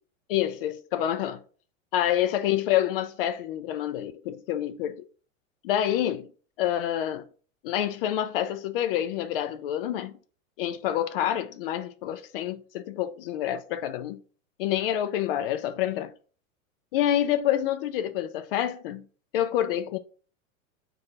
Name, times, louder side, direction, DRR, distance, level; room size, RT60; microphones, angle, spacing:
voice 1, 0.3-1.4 1.9-5.0 5.6-6.3 6.6-7.3 7.6-10.2 10.6-14.2 14.6-16.1 16.9-19.1 19.3-20.0, left 11 dB, 45° left, 0.4 m, -27 dB
3.7 x 2.9 x 4.4 m
hypercardioid pair, 105°, 41 cm